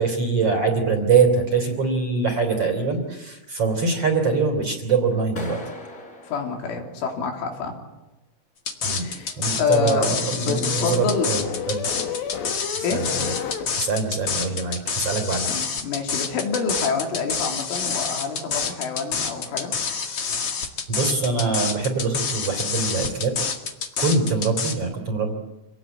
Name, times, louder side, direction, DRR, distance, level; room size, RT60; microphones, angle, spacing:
voice 1, 0.0-5.6 8.8-9.1 9.4-11.8 12.8-13.3 13.8-15.5 20.9-23.3 24.0-25.3, right 4 dB, 35° right, 5 dB, 3.6 m, -23 dB
Clapping, 5.4-7.4, left 1 dB, 20° left, 4.2 m, -39 dB
voice 2, 6.2-7.8 9.0-11.3 12.8-13.0 15.5-19.7, left 5 dB, 85° left, 1 dB, 5.7 m, -27 dB
sound 1, 8.7-24.7, left 6 dB, 50° left, 1.9 m, -27 dB
sound 2, 9.0-13.7, left 8 dB, 70° left, 3.9 m, -33 dB
26.5 x 18.5 x 8.4 m, 1.1 s
omnidirectional pair, 5.5 m